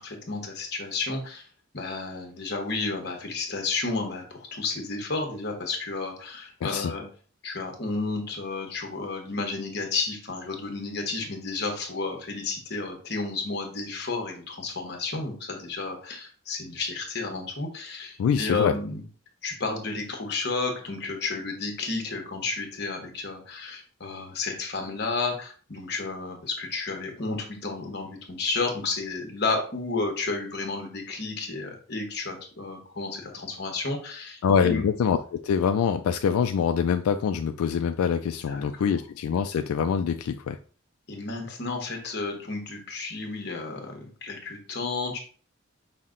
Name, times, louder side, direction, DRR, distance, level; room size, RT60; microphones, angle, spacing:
voice 1, 0.0-1.5 1.7-7.0 7.4-19.0 19.4-34.8 38.5-38.6 41.1-45.2, left 3 dB, 50° left, 2 dB, 1.0 m, -32 dB
voice 2, 6.6-6.9 18.2-18.7 34.4-40.6, left 7 dB, 90° left, 9 dB, 0.3 m, -25 dB
5.6 x 2.1 x 3.7 m, 0.40 s
head